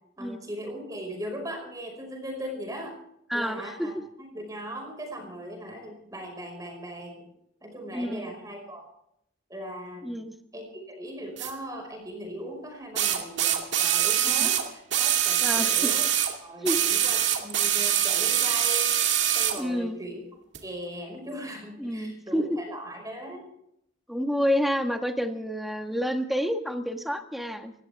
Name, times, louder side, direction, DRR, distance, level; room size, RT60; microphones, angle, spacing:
voice 1, 0.2-3.0 3.3-7.2 7.6-8.9 9.5-10.2 10.5-16.1 16.4-19.0 19.3-20.2 20.6-23.5, equal, 15° right, 3 dB, 5.4 m, -39 dB
voice 2, 3.3-3.9 7.9-8.3 10.0-10.3 14.4-14.5 15.4-15.9 16.6-16.8 19.6-20.0 21.8-22.6 24.1-27.7, equal, ahead, 5 dB, 1.5 m, -29 dB
sound 1, 11.4-11.5 13.0-16.3 16.6-19.6 20.5-20.6, right 10 dB, 55° right, 2.3 m, -24 dB
23.0 x 17.5 x 3.5 m, 0.72 s
head